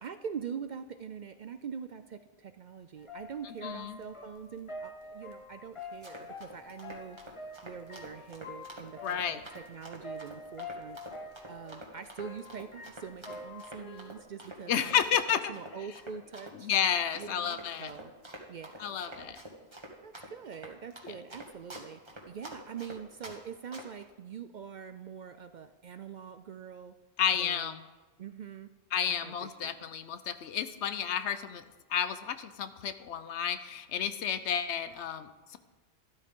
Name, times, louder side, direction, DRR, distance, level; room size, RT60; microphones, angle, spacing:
voice 1, 0.0-11.0 11.5-15.0 15.3-16.7 17.1-18.1 18.5-19.3 20.0-26.9 27.4-27.8 28.2-28.7 29.1-29.9, right 7 dB, 55° right, 10 dB, 0.5 m, -44 dB
sound 1, 3.0-14.2, left 2 dB, 30° left, 1.1 m, -46 dB
voice 2, 3.6-4.0 9.0-9.4 14.7-15.5 16.6-17.9 18.8-19.4 21.0-21.1 27.2-27.8 28.9-31.6 31.9-35.6, left 8 dB, 85° left, 11 dB, 1.0 m, -31 dB
Run, 5.8-23.4 23.7-24.0, right 1 dB, 25° right, 1.7 m, -47 dB
12.5 x 12.0 x 3.7 m, 1.2 s
omnidirectional pair, 1.1 m